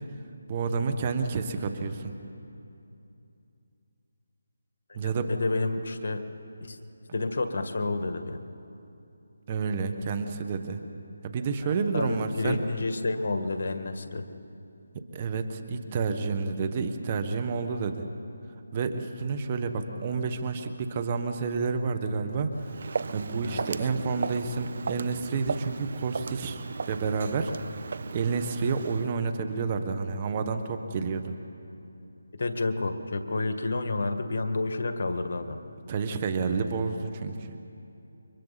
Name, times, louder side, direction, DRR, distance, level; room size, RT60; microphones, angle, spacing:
voice 1, 0.5-2.1 4.9-5.3 9.5-10.8 11.2-12.6 15.1-18.0 18.7-22.5 23.1-27.5 28.1-31.3 35.9-37.5, right 5 dB, 30° right, 6 dB, 1.5 m, -29 dB
voice 2, 4.9-6.2 6.6-6.8 7.1-8.4 11.6-14.2 23.4-23.9 32.3-35.6, left 3 dB, 60° left, 7 dB, 1.9 m, -30 dB
Walk footsteps, 22.5-29.1, right 5 dB, 50° right, 0.5 m, -36 dB
29.5 x 24.5 x 4.3 m, 2.7 s
figure-of-eight pair, 160°, 0 cm